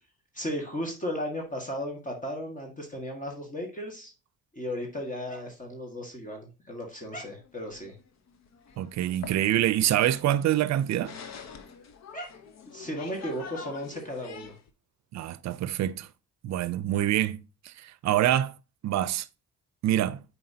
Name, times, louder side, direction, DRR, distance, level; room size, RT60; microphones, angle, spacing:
voice 1, 0.3-4.1 4.5-8.0 12.1-12.3 12.7-14.5, equal, 25° left, 1.7 m, -35 dB
sound 1, 7.4-14.7, left 6 dB, 60° left, 1.0 m, -46 dB
voice 2, 8.8-11.1 15.1-16.1 16.4-18.5 18.8-19.3 19.8-20.2, right 12 dB, 65° right, 0.5 m, -26 dB
7.6 x 4.5 x 2.8 m
cardioid pair, 90°, 30 cm